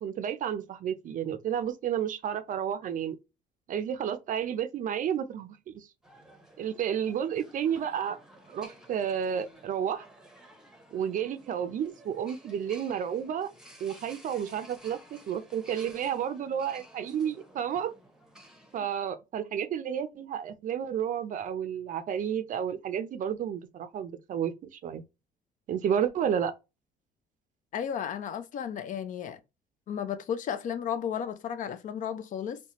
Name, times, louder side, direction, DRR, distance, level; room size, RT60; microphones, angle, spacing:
voice 1, 0.0-3.2 3.7-5.9 6.6-8.2 8.5-10.1 10.9-13.5 13.8-17.9 18.7-25.0 25.7-26.5, right 8 dB, 50° right, 0.5 m, -31 dB
sound 1, 6.0-18.8, right 1 dB, 5° right, 0.8 m, -54 dB
voice 2, 27.7-29.4 29.9-32.6, left 8 dB, 50° left, 0.5 m, -33 dB
4.0 x 2.1 x 2.9 m
cardioid pair, 110°, 17 cm